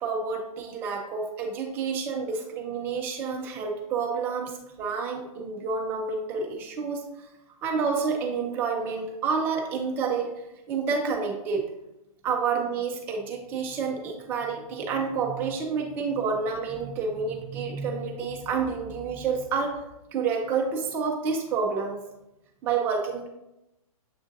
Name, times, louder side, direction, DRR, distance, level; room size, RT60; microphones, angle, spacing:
voice 1, 0.0-7.3 7.6-10.3 10.7-11.7 12.2-19.8 20.1-22.0 22.6-23.3, right 5 dB, 10° right, 1 dB, 0.3 m, -29 dB
7.1 x 2.5 x 2.6 m, 0.90 s
hypercardioid pair, 155°, 19 cm